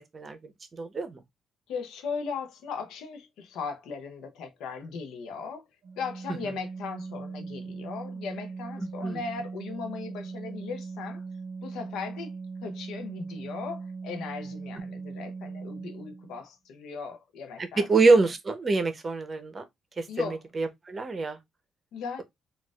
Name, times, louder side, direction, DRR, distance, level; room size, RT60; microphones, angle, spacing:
voice 1, 0.7-1.2 8.8-9.2 17.6-19.6 20.0-21.4, right 3 dB, 35° right, 0.7 m, -25 dB
voice 2, 1.7-5.6 6.0-11.2 11.6-12.4 12.6-17.9 20.1-20.4 21.9-22.2, left 5 dB, 90° left, 0.6 m, -37 dB
Organ, 5.8-16.4, right 4 dB, 60° right, 0.4 m, -39 dB
4.0 x 2.4 x 2.3 m
cardioid pair, 85°, 0 cm